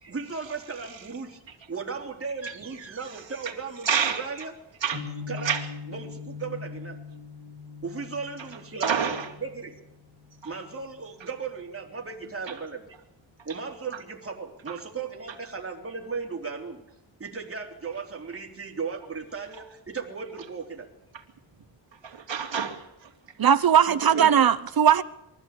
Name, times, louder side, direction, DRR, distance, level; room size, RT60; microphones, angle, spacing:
voice 1, 0.0-1.4 1.7-4.5 5.3-5.5 5.9-7.0 7.8-9.7 10.4-13.0 13.4-16.8 17.2-20.9 23.9-24.3, right 5 dB, 30° right, 3.5 m, -36 dB
voice 2, 2.4-3.5 3.8-4.3 4.8-5.0 5.4-5.7 8.8-9.3 10.4-10.5 12.5-12.6 22.0-23.1 24.2-24.3, right 7 dB, 75° right, 3.3 m, -29 dB
sound 1, 4.9-11.0, left 4 dB, 75° left, 7.4 m, -41 dB
voice 3, 23.4-25.0, right 8 dB, 50° right, 1.0 m, -19 dB
23.5 x 14.5 x 8.5 m
wide cardioid pair, 155°, 45 cm